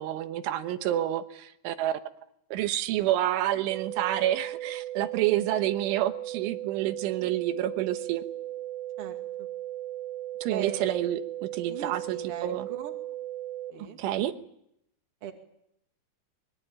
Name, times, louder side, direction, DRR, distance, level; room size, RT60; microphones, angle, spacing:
voice 1, 0.0-1.9 2.5-8.2 10.4-12.7 13.7-14.3, right 13 dB, 90° right, 9 dB, 3.7 m, -29 dB
sound 1, 3.7-13.7, right 13 dB, 65° right, 3.0 m, -37 dB
voice 2, 9.0-9.5 10.5-10.9 11.7-12.9 13.7-14.0 15.2-15.3, right 8 dB, 40° right, 4 dB, 2.6 m, -39 dB
23.5 x 22.5 x 8.9 m, 0.77 s
omnidirectional pair, 5.4 m